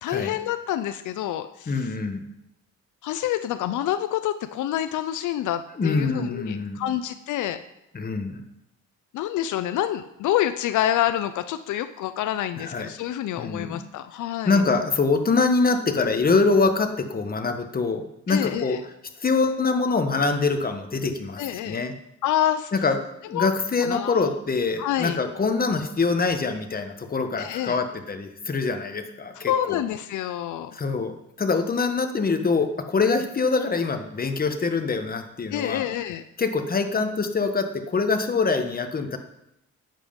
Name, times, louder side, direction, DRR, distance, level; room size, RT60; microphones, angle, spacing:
voice 1, 0.0-1.9 3.0-7.6 9.1-14.6 18.3-18.8 21.4-21.8 22.2-22.7 23.3-23.5 23.8-24.3 24.8-25.2 27.4-27.8 29.5-30.7 35.5-36.2, left 12 dB, 80° left, 10 dB, 0.6 m, -27 dB
voice 2, 1.7-2.2 5.8-6.8 7.9-8.4 12.6-12.9 13.4-13.8 14.4-18.8 19.2-21.9 22.7-23.0 23.3-29.8 30.7-35.8 36.4-39.2, left 4 dB, 30° left, 7 dB, 1.3 m, -24 dB
11.0 x 7.6 x 5.3 m, 0.84 s
cardioid pair, 90°, 30 cm